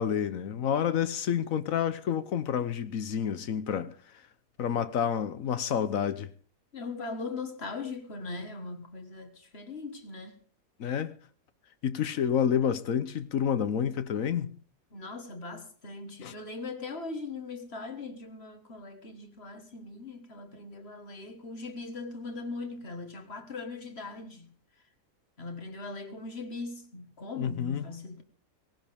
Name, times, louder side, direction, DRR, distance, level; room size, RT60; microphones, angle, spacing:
voice 1, 0.0-3.9 4.6-6.3 10.8-11.1 11.8-14.6 16.2-16.3 27.4-27.9, left 8 dB, 70° left, 1.3 m, -29 dB
voice 2, 6.7-10.4 14.9-24.5 25.4-28.2, left 3 dB, 45° left, 1.8 m, -40 dB
17.5 x 17.5 x 3.5 m
omnidirectional pair, 1.5 m